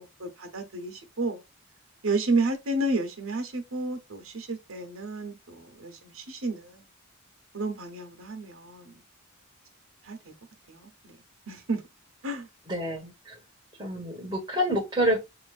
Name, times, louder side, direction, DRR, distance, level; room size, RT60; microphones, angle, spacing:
voice 1, 0.0-1.4 2.0-6.8 7.5-9.0 10.1-10.3 10.7-11.2 11.5-11.8 12.2-12.5, right 2 dB, 70° right, 1.0 m, -31 dB
voice 2, 12.7-13.4 13.8-15.2, equal, 20° right, 1.5 m, -28 dB
6.2 x 2.9 x 2.4 m
head